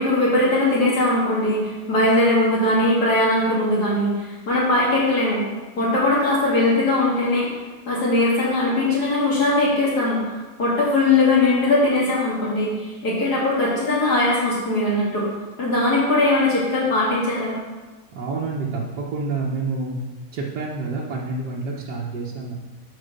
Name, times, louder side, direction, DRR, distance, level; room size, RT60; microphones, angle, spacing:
voice 1, 0.0-5.4 5.8-7.5 7.9-15.2 15.6-17.5, left 2 dB, 75° left, -6 dB, 2.7 m, -20 dB
voice 2, 18.1-20.0 20.3-22.6, right 3 dB, 85° right, -5 dB, 1.7 m, -28 dB
10.0 x 4.5 x 6.6 m, 1.2 s
omnidirectional pair, 1.7 m